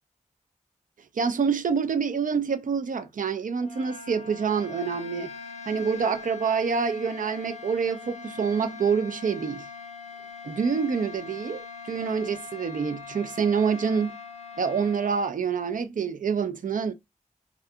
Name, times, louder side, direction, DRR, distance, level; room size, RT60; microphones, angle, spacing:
voice 1, 1.2-5.3 5.7-9.7 10.4-14.1 14.6-16.9, right 6 dB, 80° right, 0.4 m, -27 dB
sound 1, 3.5-15.4, left 5 dB, 55° left, 0.5 m, -42 dB
2.4 x 2.3 x 2.6 m
wide cardioid pair, 65°, 13 cm